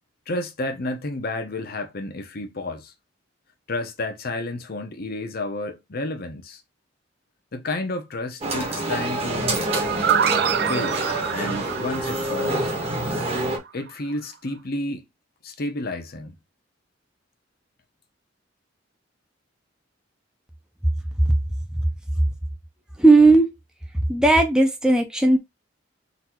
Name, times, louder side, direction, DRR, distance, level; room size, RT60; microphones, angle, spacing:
voice 1, 0.3-2.9 3.7-6.6 7.5-9.5 10.3-11.1 11.3-12.8 13.7-15.0 15.4-16.4, left 2 dB, 55° left, 0.9 m, -31 dB
sound 1, 8.4-13.6, right 1 dB, 35° right, 1.4 m, -26 dB
sound 2, 9.7-13.4, right 8 dB, 55° right, 0.5 m, -26 dB
voice 2, 23.0-23.5 24.1-25.4, right 2 dB, 5° right, 0.7 m, -15 dB
4.1 x 2.8 x 4.4 m
head